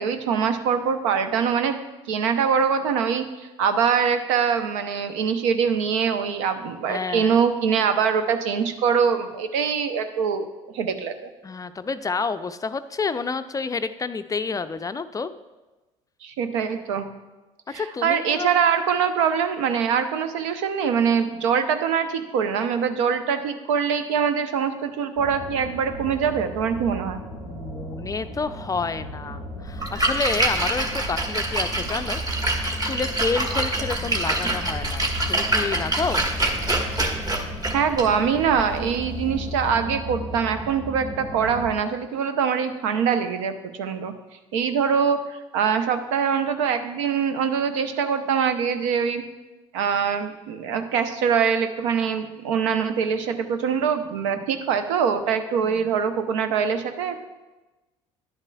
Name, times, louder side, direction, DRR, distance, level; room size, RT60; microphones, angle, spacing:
voice 1, 0.0-1.8 2.1-10.4 10.7-11.3 16.2-17.1 17.7-27.2 37.7-43.5 43.8-44.1 44.5-49.2 49.7-57.2, right 7 dB, 75° right, 9 dB, 0.7 m, -23 dB
voice 2, 6.9-7.4 11.4-15.3 17.7-18.5 27.5-32.2 32.8-36.2 55.6-55.9, left 4 dB, 20° left, 11 dB, 0.4 m, -29 dB
sound 1, 25.2-41.7, left 1 dB, 45° right, 2.3 m, -36 dB
Splash splatter, 29.7-39.6, right 2 dB, 25° right, 1.4 m, -26 dB
10.5 x 9.6 x 2.3 m, 1.1 s
hypercardioid pair, 60°, 16 cm